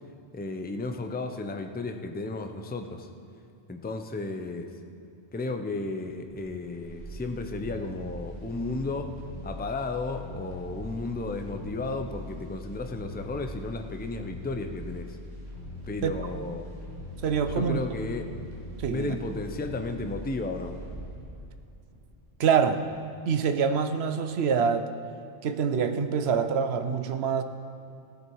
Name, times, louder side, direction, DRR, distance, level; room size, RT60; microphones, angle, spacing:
voice 1, 0.3-3.1 3.7-4.7 5.3-9.2 9.4-15.2 15.9-16.7 17.6-18.3 18.9-20.8, left 3 dB, 10° left, 6 dB, 0.5 m, -33 dB
sound 1, 6.3-22.4 22.7-22.8, equal, 50° right, 3.6 m, -41 dB
voice 2, 17.2-17.8 18.8-19.2 22.4-22.8 23.3-24.9 25.4-27.4, right 6 dB, 70° right, 9 dB, 1.0 m, -25 dB
16.0 x 10.0 x 4.6 m, 2.5 s
omnidirectional pair, 1.1 m